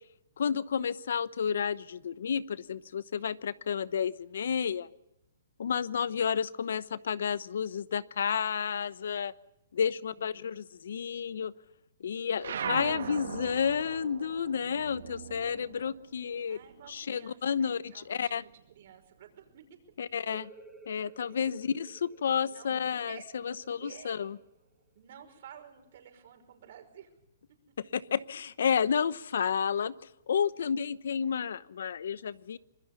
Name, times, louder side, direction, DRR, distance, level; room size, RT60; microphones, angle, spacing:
voice 1, 0.4-4.9 5.6-9.3 9.7-11.5 12.0-16.6 16.9-18.4 20.0-20.5 20.9-23.2 23.4-24.4 27.9-29.9 30.3-32.6, left 7 dB, 75° left, 18 dB, 0.9 m, -31 dB
voice 2, 10.0-10.6 16.5-19.8 21.2-21.7 22.5-22.7 23.0-24.3 24.9-27.1 27.5-27.6, right 9 dB, 55° right, 6 dB, 5.5 m, -52 dB
sound 1, 12.4-17.3 17.6-19.0, right 7 dB, 75° right, 1.8 m, -40 dB
sound 2, 20.2-25.6, right 3 dB, 10° right, 2.5 m, -55 dB
25.5 x 20.5 x 7.0 m, 0.87 s
hypercardioid pair, 150°, 0 cm